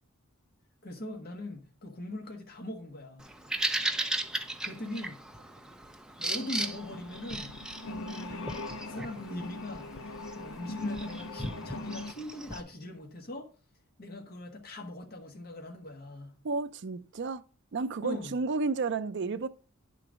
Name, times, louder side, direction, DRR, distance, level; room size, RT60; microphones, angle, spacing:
voice 1, 0.8-3.3 4.6-5.2 6.2-7.5 7.8-13.5 14.0-16.4 18.0-18.3, left 1 dB, 45° left, 1.3 m, -41 dB
Bird vocalization bird call bird song, 3.2-12.6, right 1 dB, 5° right, 0.6 m, -37 dB
sound 1, 6.5-12.1, left 2 dB, 70° left, 0.6 m, -41 dB
voice 2, 16.4-17.4 17.7-19.5, right 4 dB, 55° right, 0.5 m, -31 dB
10.0 x 3.9 x 6.2 m
head